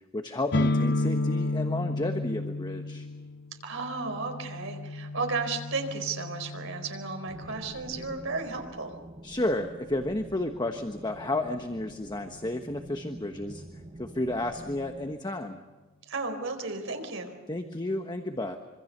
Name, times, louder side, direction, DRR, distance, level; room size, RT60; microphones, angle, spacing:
voice 1, 0.1-3.1 9.2-13.6 14.0-15.6 17.5-18.6, left 1 dB, 20° left, 5 dB, 1.3 m, -32 dB
sound 1, 0.5-8.1, left 2 dB, 55° left, 0.9 m, -32 dB
voice 2, 3.6-8.9 16.1-17.3, right 4 dB, 70° right, 5 dB, 4.5 m, -34 dB
sound 2, 7.3-15.2, right 1 dB, 25° right, 1.2 m, -47 dB
26.0 x 25.5 x 6.8 m, 1.2 s
head